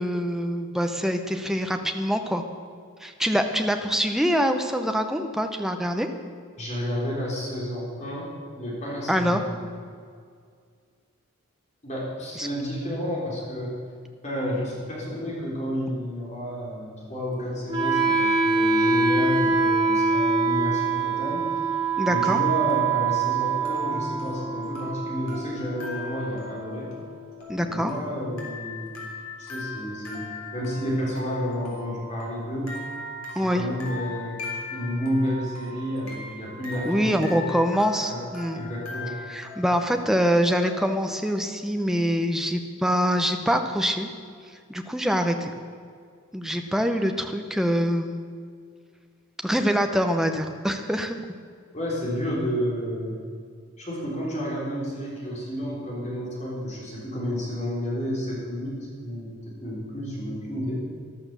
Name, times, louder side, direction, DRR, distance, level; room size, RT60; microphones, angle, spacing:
voice 1, 0.0-2.4 3.0-6.1 9.1-9.4 12.4-12.5 22.0-22.4 27.5-27.9 33.4-33.6 36.8-38.6 39.3-44.1 44.7-45.5 46.3-48.2 49.4-51.2, equal, ahead, 5 dB, 0.8 m, -24 dB
voice 2, 6.6-9.5 11.8-13.7 14.2-21.4 22.1-26.9 27.6-28.9 29.4-30.2 30.5-32.7 33.3-34.4 34.7-37.5 38.1-38.2 38.5-39.1 51.7-53.2 53.8-60.8, equal, 30° left, -5 dB, 3.8 m, -31 dB
Wind instrument woodwind instrument, 17.7-27.7, right 4 dB, 20° right, 2.2 m, -25 dB
sound 1, 21.0-21.4 22.7-40.9, left 2 dB, 80° left, 3.4 m, -40 dB
13.5 x 11.5 x 6.8 m, 2.1 s
head